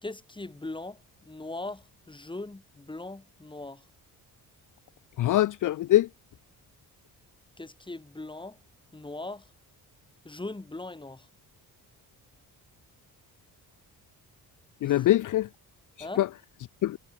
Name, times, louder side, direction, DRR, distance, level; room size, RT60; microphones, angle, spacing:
voice 1, 0.0-3.8 7.6-8.6 8.9-9.5 10.2-11.3 14.8-15.1 16.0-16.2, left 2 dB, 10° left, 5.4 m, -40 dB
voice 2, 5.2-6.1 14.8-15.5 16.0-16.3 16.8-17.0, left 14 dB, 55° left, 0.5 m, -23 dB
cardioid pair, 145°, 38 cm